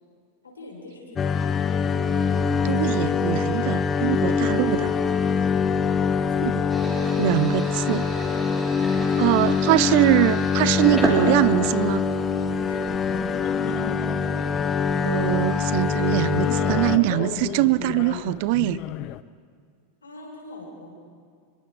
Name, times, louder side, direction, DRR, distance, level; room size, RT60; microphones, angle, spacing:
voice 1, 0.4-1.5 6.0-6.5 12.6-12.9 20.0-20.9, left 2 dB, 75° left, 5.7 m, -42 dB
sound 1, 1.1-17.0, left 6 dB, 20° left, 1.0 m, -24 dB
voice 2, 2.6-4.9 6.4-6.5 7.2-8.1 9.2-12.0 15.0-18.8, right 19 dB, 45° right, 0.4 m, -22 dB
sound 2, 6.7-12.2 12.7-13.4, right 1 dB, 5° right, 4.3 m, -32 dB
sound 3, 12.6-19.2, left 15 dB, 40° left, 0.5 m, -35 dB
25.5 x 22.5 x 4.8 m
figure-of-eight pair, 90°, 0 cm